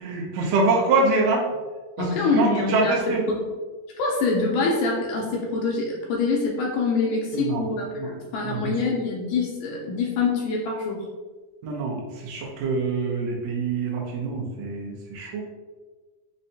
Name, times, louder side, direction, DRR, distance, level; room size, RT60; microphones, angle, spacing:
voice 1, 0.0-1.5 2.3-3.2 7.3-7.6 8.0-8.1 8.4-8.8 11.6-15.4, right 3 dB, 80° right, -1 dB, 1.5 m, -25 dB
voice 2, 2.0-3.0 3.3-3.4 4.0-11.1, left 3 dB, 80° left, -1 dB, 1.9 m, -25 dB
5.3 x 2.1 x 2.7 m, 1.3 s
omnidirectional pair, 3.8 m